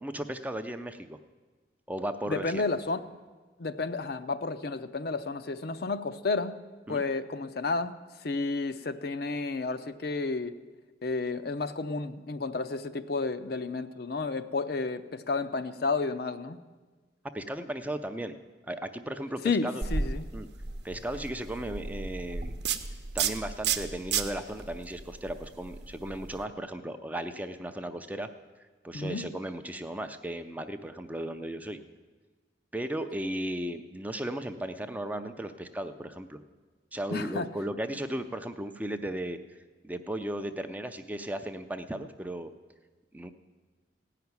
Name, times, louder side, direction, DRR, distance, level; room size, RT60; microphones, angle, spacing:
voice 1, 0.0-1.2 1.9-2.8 6.9-7.0 17.3-18.4 18.6-19.8 20.3-20.5 20.8-22.5 23.1-28.3 28.8-31.8 32.7-36.4 36.9-39.4 39.8-42.5 43.1-43.3, right 1 dB, 10° right, 8 dB, 0.5 m, -36 dB
voice 2, 2.3-3.0 3.6-6.6 6.9-7.9 8.2-10.5 11.0-16.6 19.4-20.3 28.9-29.3 37.1-37.5, left 3 dB, 55° left, 10 dB, 0.6 m, -31 dB
sound 1, 19.8-26.4, right 5 dB, 60° right, 0.8 m, -34 dB
16.5 x 5.8 x 9.5 m, 1.3 s
head